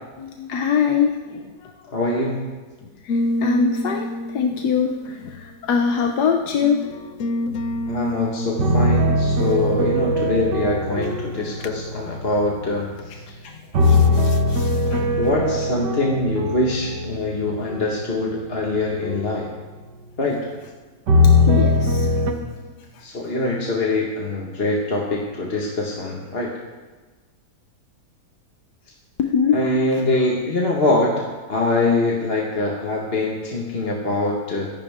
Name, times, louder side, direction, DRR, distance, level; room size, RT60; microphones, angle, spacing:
voice 1, 0.2-1.7 3.0-6.8 14.9-15.0 21.5-22.1 29.2-29.6, left 6 dB, 75° left, 3 dB, 1.4 m, -22 dB
voice 2, 1.9-2.4 7.9-13.2 15.2-19.5 20.2-20.4 23.0-26.5 29.5-31.1 31.5-34.7, left 2 dB, 35° left, -3 dB, 1.8 m, -23 dB
sound 1, 3.1-5.9 6.6-8.7 11.6-11.8 13.0-13.3 13.8-14.8, left 1 dB, 60° left, 0.9 m, -28 dB
sound 2, 7.5-8.2 8.6-13.1 13.7-19.4 21.1-22.3, left 2 dB, 90° right, 1.9 m, -21 dB
23.5 x 11.0 x 3.7 m, 1.3 s
omnidirectional pair, 1.8 m